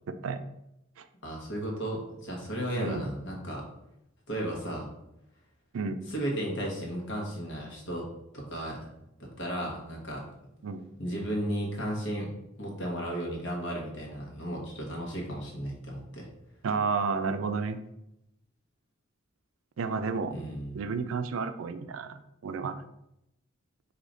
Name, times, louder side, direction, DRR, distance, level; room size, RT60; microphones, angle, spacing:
voice 1, 0.1-0.4 1.0-1.1 2.8-3.0 5.7-6.0 10.6-10.9 16.6-17.8 19.8-20.3 20.7-22.8, right 5 dB, 80° right, 9 dB, 0.4 m, -31 dB
voice 2, 1.2-3.7 4.3-4.9 6.1-8.1 8.3-8.9 9.4-10.2 11.0-16.3 20.3-20.8, right 1 dB, 60° left, -1 dB, 1.3 m, -34 dB
4.9 x 2.8 x 3.9 m, 0.84 s
head